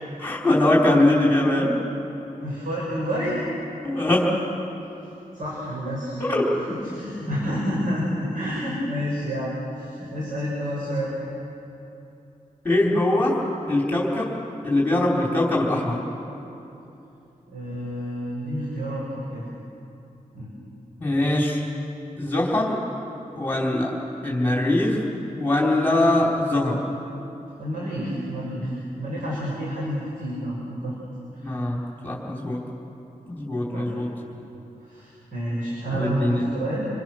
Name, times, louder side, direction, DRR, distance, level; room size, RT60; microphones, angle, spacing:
voice 1, 0.2-1.8 3.8-4.4 6.2-6.4 12.6-13.4 13.7-14.3 14.6-16.0 21.0-21.6 22.2-22.8 23.4-23.9 24.2-25.0 25.3-26.8 31.4-32.6 33.3-34.1 35.9-36.5, left 1 dB, 15° left, -4 dB, 3.9 m, -22 dB
voice 2, 2.4-3.4 5.3-6.3 6.7-11.1 17.5-19.4 20.3-20.5 27.6-30.9 31.3-31.6 33.6-34.0 34.8-36.9, equal, 70° right, -5 dB, 6.5 m, -29 dB
27.0 x 24.5 x 6.4 m, 2.9 s
wide cardioid pair, 90°, 14 cm